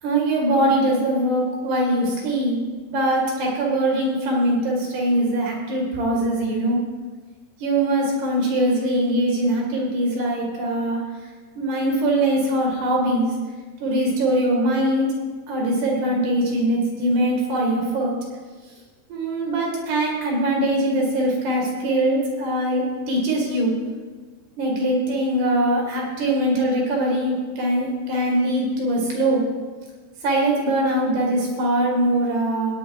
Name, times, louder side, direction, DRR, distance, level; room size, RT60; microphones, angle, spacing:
voice 1, 0.0-2.6 2.9-6.8 7.6-11.0 11.6-13.3 13.8-15.1 15.5-18.1 19.1-23.7 24.6-29.4 30.2-32.7, right 1 dB, 60° right, -2 dB, 4.0 m, -22 dB
18.0 x 9.7 x 4.8 m, 1.5 s
omnidirectional pair, 5.7 m